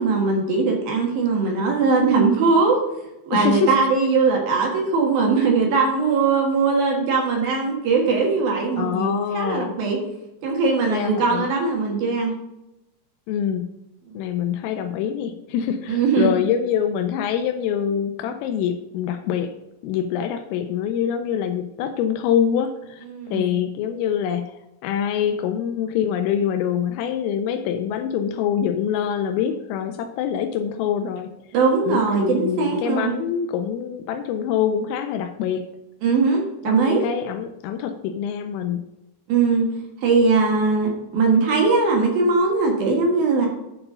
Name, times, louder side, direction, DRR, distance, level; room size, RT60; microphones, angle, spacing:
voice 1, 0.0-2.8 3.3-9.1 9.3-10.0 10.4-12.3 14.1-14.2 15.9-16.3 23.1-23.4 31.5-33.2 36.0-37.0 39.3-39.7 40.0-43.5, right 4 dB, 60° right, 0 dB, 2.7 m, -20 dB
voice 2, 3.3-3.7 8.8-9.8 10.9-11.5 13.3-13.7 14.1-19.5 19.8-23.0 23.3-24.6 24.8-31.3 31.9-35.7 36.7-38.8, left 8 dB, 85° left, 7 dB, 3.2 m, -25 dB
11.0 x 4.5 x 5.5 m, 0.91 s
omnidirectional pair, 5.9 m